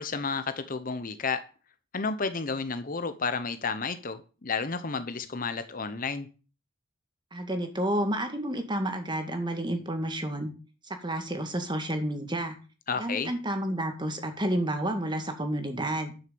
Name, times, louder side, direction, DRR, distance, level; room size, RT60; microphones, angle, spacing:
voice 1, 0.0-1.4 1.9-6.3 12.9-13.3, left 4 dB, 40° left, 0.9 m, -31 dB
voice 2, 7.3-10.5 11.0-12.5 13.0-16.1, right 1 dB, 20° right, 2.0 m, -30 dB
11.0 x 6.6 x 7.0 m
head